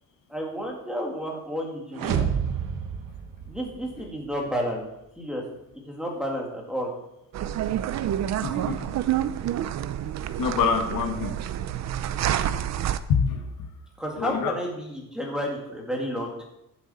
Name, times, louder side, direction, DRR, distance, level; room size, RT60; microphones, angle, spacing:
voice 1, 0.3-2.2 3.5-4.9 5.2-5.4 5.9-6.9 14.0-16.5, equal, ahead, -1 dB, 2.1 m, -31 dB
sound 1, 1.9-4.1, right 8 dB, 80° right, 1.1 m, -29 dB
sound 2, 7.3-13.0, right 11 dB, 55° right, 0.6 m, -28 dB
voice 2, 8.4-8.8 10.4-11.3 13.1-13.5 14.2-14.5 15.3-15.4, left 6 dB, 85° left, 4 dB, 1.6 m, -25 dB
14.5 x 7.1 x 4.2 m, 0.86 s
cardioid pair, 165°, 32 cm